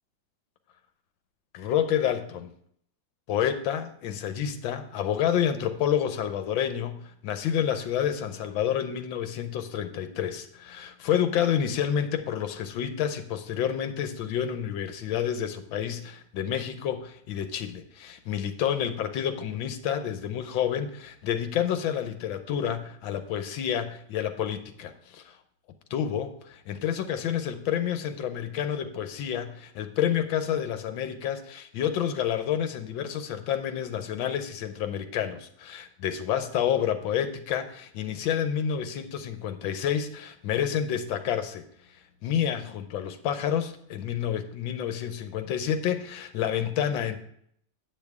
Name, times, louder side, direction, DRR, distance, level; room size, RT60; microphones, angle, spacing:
voice 1, 1.5-2.5 3.3-25.2 25.9-41.6 42.2-47.2, left 9 dB, 80° left, 9 dB, 1.5 m, -29 dB
8.9 x 8.0 x 3.5 m, 0.66 s
omnidirectional pair, 2.1 m